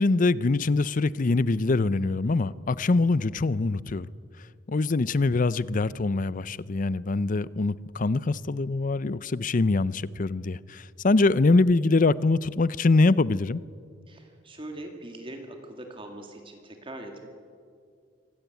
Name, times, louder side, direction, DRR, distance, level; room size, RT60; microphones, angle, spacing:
voice 1, 0.0-4.1 4.7-13.6, left 3 dB, 45° left, 0.6 m, -24 dB
voice 2, 14.1-17.3, right 1 dB, 30° right, 2.3 m, -41 dB
25.5 x 16.5 x 9.4 m
head